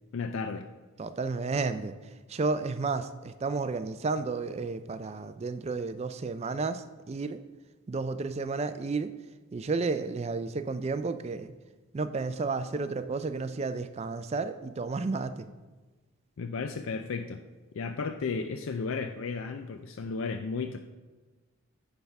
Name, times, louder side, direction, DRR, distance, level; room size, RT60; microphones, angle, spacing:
voice 1, 0.1-0.7 16.4-17.4 17.7-20.8, left 4 dB, 60° left, 7 dB, 0.4 m, -34 dB
voice 2, 1.0-1.9 2.3-7.4 7.9-9.1 9.5-11.5 11.9-15.5, right 4 dB, 30° right, 11 dB, 0.3 m, -32 dB
9.4 x 3.5 x 5.9 m, 1.3 s
head